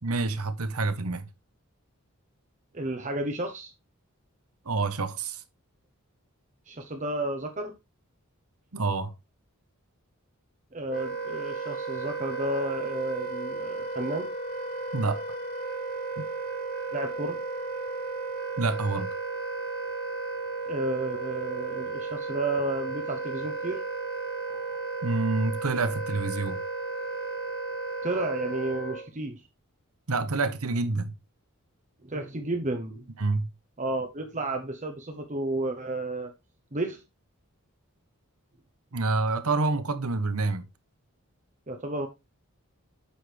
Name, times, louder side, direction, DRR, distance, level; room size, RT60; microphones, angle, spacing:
voice 1, 0.0-1.3 4.6-5.4 8.7-9.1 14.9-15.2 16.2-16.3 18.6-19.1 25.0-26.6 30.1-31.1 33.2-33.5 38.9-40.6, right 3 dB, 90° right, 1.1 m, -27 dB
voice 2, 2.7-3.7 6.7-7.7 10.7-14.3 16.9-17.4 20.7-23.8 24.5-24.8 28.0-29.4 32.0-33.0 33.8-36.3 36.7-37.0 41.7-42.1, right 2 dB, 35° right, 0.9 m, -32 dB
Wind instrument woodwind instrument, 10.9-29.1, right 3 dB, 45° left, 2.1 m, -34 dB
8.2 x 6.2 x 3.3 m
head